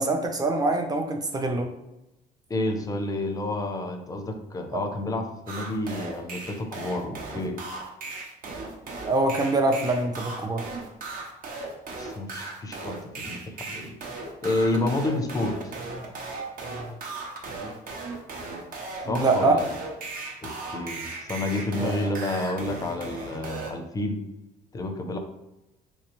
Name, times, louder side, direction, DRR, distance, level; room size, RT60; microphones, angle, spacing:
voice 1, 0.0-1.7 4.7-4.8 9.1-10.6 19.1-19.6 21.8-21.9, right 2 dB, 25° right, 4 dB, 0.6 m, -24 dB
voice 2, 2.5-7.6 12.0-13.9 14.4-15.7 19.1-19.7 20.4-24.2 24.7-25.2, left 2 dB, 20° left, 6 dB, 0.5 m, -30 dB
sound 1, 5.5-23.7, right 3 dB, 55° right, 0.8 m, -37 dB
3.2 x 3.1 x 3.0 m, 0.93 s
cardioid pair, 110°, 17 cm